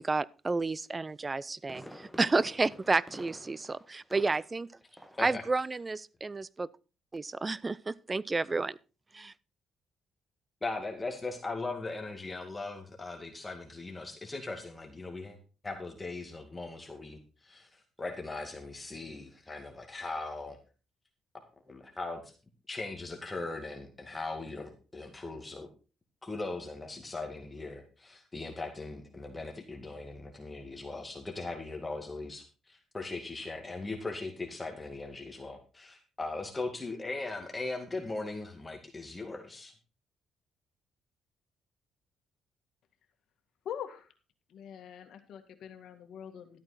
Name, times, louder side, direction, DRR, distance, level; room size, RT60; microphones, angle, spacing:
voice 1, 0.0-4.7 5.2-6.7 7.1-8.8 9.1-9.3, right 3 dB, 25° right, 0.5 m, -31 dB
Fireworks, 1.2-4.7 5.0-5.3 5.7-5.8, equal, 5° right, 1.4 m, -49 dB
voice 2, 10.6-15.4 15.6-20.6 21.7-22.3 22.7-25.7 26.2-39.7, left 3 dB, 20° left, 2.2 m, -39 dB
voice 3, 43.7-44.1 44.5-46.6, left 9 dB, 75° left, 1.9 m, -43 dB
12.5 x 8.7 x 4.1 m
cardioid pair, 90°, 0 cm